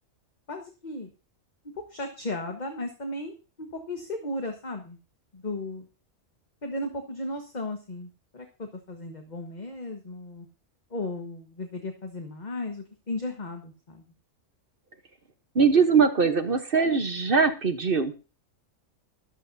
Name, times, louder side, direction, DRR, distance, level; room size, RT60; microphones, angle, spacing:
voice 1, 0.5-1.1 1.9-5.0 5.3-5.9 6.6-10.5 10.9-14.0, left 2 dB, 35° left, 4 dB, 1.5 m, -35 dB
voice 2, 15.5-18.1, right 5 dB, 45° right, 8 dB, 1.2 m, -21 dB
14.0 x 12.5 x 2.7 m, 0.33 s
omnidirectional pair, 1.3 m